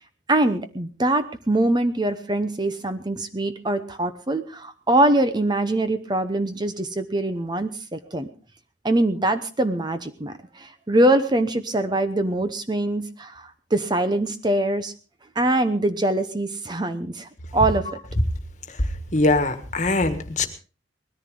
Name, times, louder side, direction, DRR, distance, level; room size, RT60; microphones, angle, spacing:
voice 1, 0.3-8.3 8.8-14.9 15.4-18.0, right 1 dB, 25° right, 10 dB, 0.8 m, -23 dB
voice 2, 19.1-20.5, left 2 dB, 40° left, 8 dB, 1.7 m, -21 dB
20.0 x 14.0 x 3.8 m, 0.34 s
head